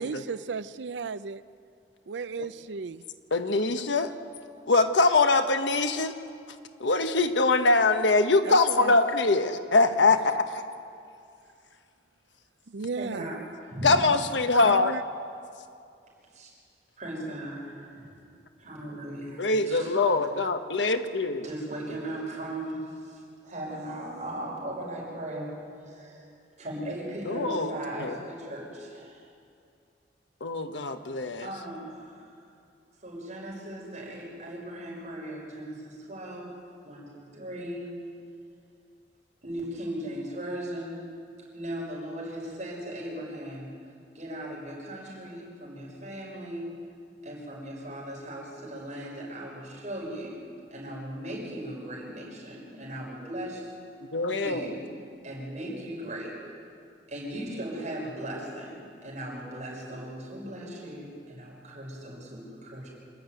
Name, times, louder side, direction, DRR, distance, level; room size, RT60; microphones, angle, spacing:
voice 1, 0.0-1.4 2.1-3.0 8.4-8.9 12.7-13.3 14.6-15.0, right 5 dB, 80° right, 0.5 m, -34 dB
voice 2, 3.3-4.1 4.7-6.1 6.8-10.6 13.8-14.9 19.4-21.5 27.2-28.2 30.4-31.5 54.1-54.7, left 3 dB, 85° left, 1.2 m, -23 dB
voice 3, 13.0-13.4 13.7-14.0 16.3-16.5 17.0-18.3 18.6-20.0 21.4-26.3 26.6-29.2 31.4-32.4 33.0-36.5 36.8-37.9 39.4-41.1 41.5-43.7 44.1-46.7 47.2-50.4 50.7-53.7 54.4-54.8 55.2-56.4 57.1-62.9, right 1 dB, 40° right, 5.8 m, -38 dB
26.0 x 11.5 x 9.3 m
head